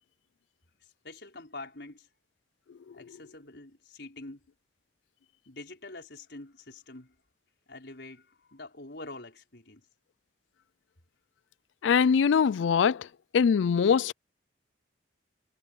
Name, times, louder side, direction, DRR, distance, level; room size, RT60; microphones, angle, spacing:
voice 1, 0.8-2.1 2.9-4.4 5.5-7.2 7.7-9.9, left 2 dB, 65° left, 5.2 m, -46 dB
voice 2, 11.8-13.1 13.3-14.1, left 6 dB, 80° left, 0.4 m, -22 dB
head